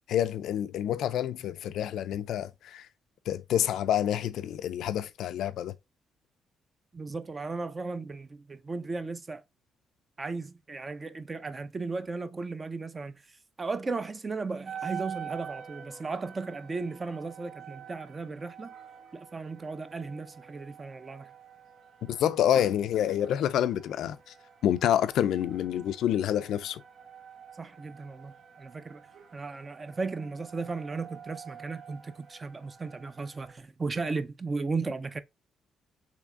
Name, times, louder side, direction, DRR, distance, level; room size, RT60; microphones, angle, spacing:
voice 1, 0.1-2.8 3.3-5.7 22.1-24.2 24.6-26.8, left 10 dB, 75° left, 0.4 m, -28 dB
voice 2, 6.9-9.4 10.2-13.2 13.6-18.7 19.1-21.3 27.6-29.0 29.3-35.2, right 4 dB, 30° right, 0.5 m, -36 dB
sound 1, 14.6-33.6, right 8 dB, 65° right, 1.0 m, -47 dB
3.5 x 3.2 x 3.6 m
cardioid pair, 90°, 0 cm